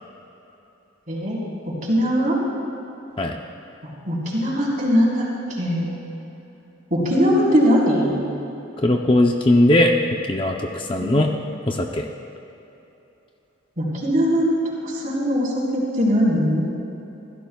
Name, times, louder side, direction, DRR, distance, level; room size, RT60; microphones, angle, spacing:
voice 1, 1.1-1.4 1.9-2.4 4.1-5.3 5.6-5.9 6.9-8.2 11.0-11.2 13.8-14.6 14.8-16.7, equal, 40° right, -5 dB, 4.0 m, -20 dB
voice 2, 8.8-9.9 10.3-11.3 11.7-12.1, left 1 dB, 25° left, 2 dB, 0.7 m, -19 dB
26.0 x 16.0 x 2.4 m, 3.0 s
head